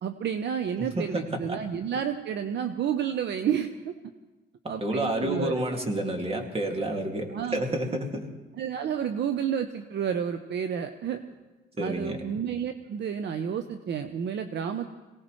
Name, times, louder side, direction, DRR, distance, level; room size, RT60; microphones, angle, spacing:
voice 1, 0.0-3.9 4.7-5.6 7.3-7.6 8.6-11.2 11.8-14.9, right 8 dB, 60° right, 8 dB, 0.8 m, -30 dB
voice 2, 0.8-1.6 4.6-8.3 11.8-12.2, right 1 dB, 30° right, 3 dB, 2.3 m, -30 dB
23.0 x 18.0 x 3.2 m, 1.1 s
cardioid pair, 90°, 20 cm